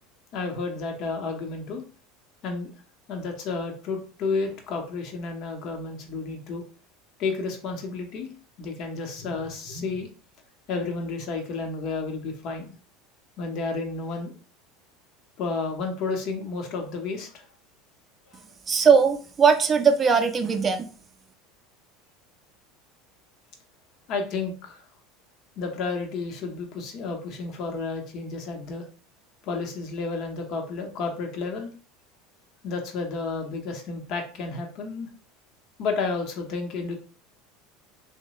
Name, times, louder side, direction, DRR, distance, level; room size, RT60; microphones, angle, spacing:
voice 1, 0.3-1.8 2.4-2.7 3.1-6.6 7.2-8.3 8.6-10.1 10.7-12.7 13.4-14.3 15.4-17.4 24.1-24.8 25.6-28.8 29.4-31.7 32.6-35.1 35.8-36.9, left 4 dB, 55° left, 2 dB, 0.8 m, -31 dB
voice 2, 18.7-20.9, right 6 dB, 30° right, 6 dB, 0.4 m, -20 dB
3.0 x 2.1 x 2.9 m, 0.39 s
hypercardioid pair, 90°, 0 cm